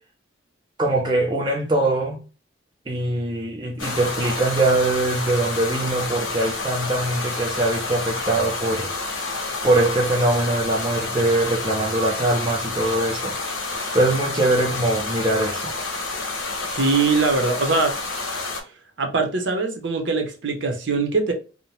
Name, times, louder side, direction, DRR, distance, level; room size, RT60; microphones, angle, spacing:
voice 1, 0.8-2.2 2.9-8.9 9.6-13.4 13.9-15.7, right 2 dB, 25° right, 0.5 m, -22 dB
sound 1, 3.8-18.6, left 3 dB, 90° left, 0.9 m, -29 dB
voice 2, 16.7-17.9 19.0-21.3, right 3 dB, 60° right, 0.7 m, -22 dB
2.7 x 2.1 x 3.1 m
head